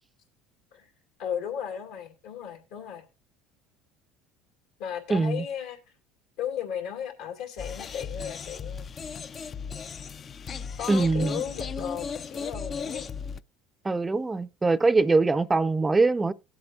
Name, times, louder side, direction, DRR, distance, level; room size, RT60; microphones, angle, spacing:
voice 1, 1.2-3.0 4.8-5.8 6.4-8.9 10.8-13.0, left 8 dB, 75° left, 2.2 m, -35 dB
voice 2, 5.1-5.4 10.9-11.4 13.8-16.3, right 3 dB, 15° right, 0.5 m, -23 dB
sound 1, 7.6-13.4, left 6 dB, 35° left, 0.4 m, -36 dB
18.5 x 7.9 x 2.4 m
supercardioid pair, 95°, 0 cm